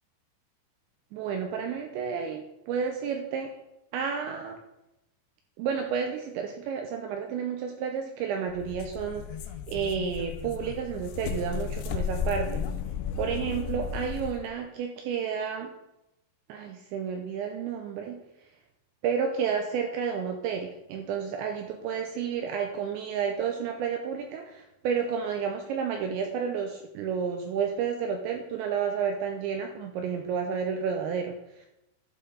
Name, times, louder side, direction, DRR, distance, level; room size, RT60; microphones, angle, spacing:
voice 1, 1.1-3.5 3.9-4.6 5.6-9.3 9.7-12.6 13.2-15.7 16.5-18.2 19.0-31.7, right 7 dB, 85° right, 4 dB, 2.6 m, -31 dB
sound 1, 8.5-14.5, left 6 dB, 85° left, 2.6 m, -34 dB
11.0 x 5.6 x 3.9 m, 0.87 s
omnidirectional pair, 5.8 m